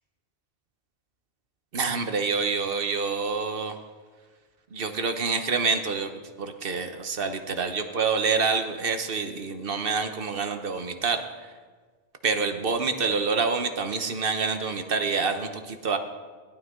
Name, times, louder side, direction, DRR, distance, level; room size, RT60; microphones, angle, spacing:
voice 1, 1.7-3.7 4.7-11.2 12.2-16.0, right 4 dB, 55° right, 7 dB, 1.2 m, -27 dB
18.0 x 12.0 x 3.8 m, 1.5 s
omnidirectional pair, 1.1 m